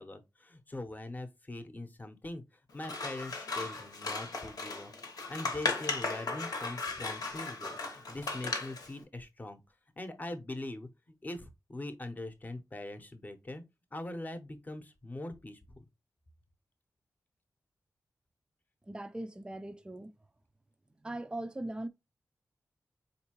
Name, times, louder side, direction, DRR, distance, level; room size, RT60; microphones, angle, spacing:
voice 1, 0.0-2.4 2.7-4.9 5.3-9.6 10.0-10.9 11.2-13.6 13.9-15.8, left 2 dB, 25° left, 0.7 m, -42 dB
Scissors, 2.8-8.9, left 3 dB, 90° left, 1.0 m, -36 dB
voice 2, 18.9-20.1 21.0-21.9, right 1 dB, 15° right, 0.3 m, -39 dB
4.4 x 2.7 x 2.9 m
wide cardioid pair, 105°, 6 cm